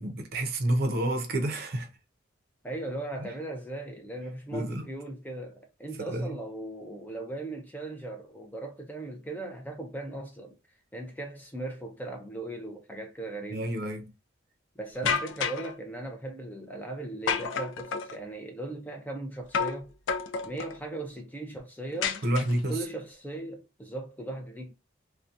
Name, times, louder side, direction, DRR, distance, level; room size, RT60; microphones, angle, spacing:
voice 1, 0.0-1.9 3.2-3.3 4.5-4.8 6.1-6.4 13.5-14.0 22.2-22.8, right 1 dB, 50° right, 0.6 m, -29 dB
voice 2, 2.6-10.6 10.9-13.6 14.8-19.9 20.4-22.2 22.7-24.7, right 2 dB, 10° left, 0.4 m, -38 dB
sound 1, 15.1-15.7 17.3-18.2 19.5-19.8 20.1-20.8 22.0-22.8, left 6 dB, 70° left, 0.4 m, -30 dB
2.7 x 2.2 x 2.4 m
head